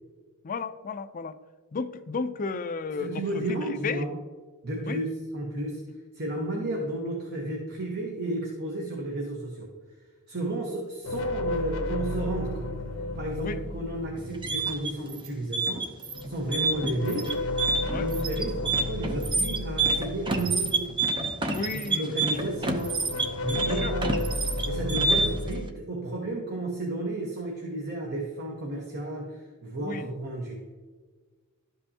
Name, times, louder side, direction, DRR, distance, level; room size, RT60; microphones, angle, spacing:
voice 1, 0.4-1.4 1.7-3.6 3.8-4.0 4.9-5.0 13.4-13.6 16.5-16.6 17.9-18.1 21.5-22.1 23.7-23.9 25.1-25.2 29.8-30.1, left 4 dB, 40° left, 10 dB, 0.4 m, -33 dB
voice 2, 3.0-4.2 4.6-5.9 6.1-9.7 10.3-12.8 13.2-15.9 16.2-17.4 18.0-21.0 21.9-23.0 23.4-24.2 24.7-30.6, right 1 dB, 50° right, 0 dB, 1.1 m, -32 dB
sound 1, 11.0-15.2 16.0-21.8 22.1-25.6, left 2 dB, 70° left, 0.9 m, -33 dB
sound 2, 14.2-25.5, right 3 dB, 20° right, 0.6 m, -28 dB
12.0 x 5.6 x 2.8 m, 1.4 s
head